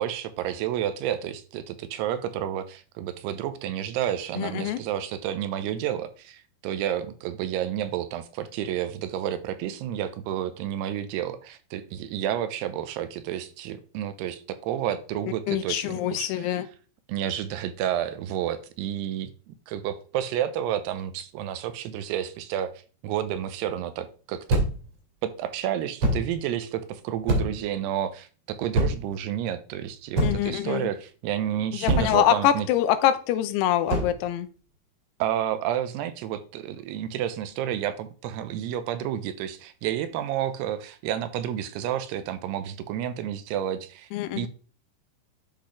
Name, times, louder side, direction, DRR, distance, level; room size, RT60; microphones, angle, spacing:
voice 1, 0.0-16.7 17.1-22.7 23.0-24.6 25.2-32.7 35.2-44.1 44.4-44.5, right 11 dB, 90° right, 11 dB, 2.7 m, -30 dB
voice 2, 4.4-4.8 15.5-16.7 30.2-30.9 31.8-34.5 44.1-44.5, left 12 dB, 90° left, 11 dB, 2.7 m, -24 dB
sound 1, 24.5-24.9 26.0-26.3 27.3-27.7 28.7-29.2 30.1-30.6 31.9-32.2 33.9-34.2, right 1 dB, 45° right, 2.1 m, -24 dB
10.0 x 3.9 x 3.1 m, 0.37 s
omnidirectional pair, 4.7 m